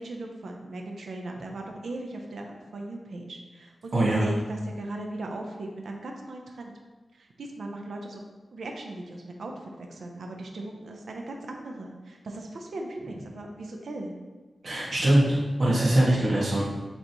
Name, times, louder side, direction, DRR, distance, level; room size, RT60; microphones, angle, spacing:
voice 1, 0.0-6.7 7.1-8.2 8.5-14.1, right 2 dB, 80° right, 2 dB, 0.7 m, -38 dB
voice 2, 3.9-4.3 14.6-16.6, right 1 dB, 60° right, -7 dB, 2.0 m, -22 dB
8.7 x 4.1 x 3.1 m, 1.3 s
wide cardioid pair, 100°, 0 cm